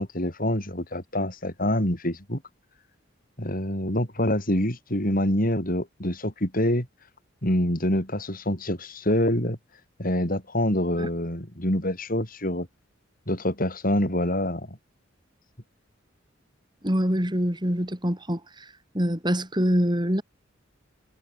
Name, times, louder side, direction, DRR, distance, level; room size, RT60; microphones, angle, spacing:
voice 1, 0.0-2.4 3.4-6.9 7.4-9.6 10.0-12.7 13.3-14.8, left 1 dB, 45° left, 6.8 m, -26 dB
voice 2, 16.8-18.4 18.9-20.2, equal, 20° right, 6.5 m, -24 dB
head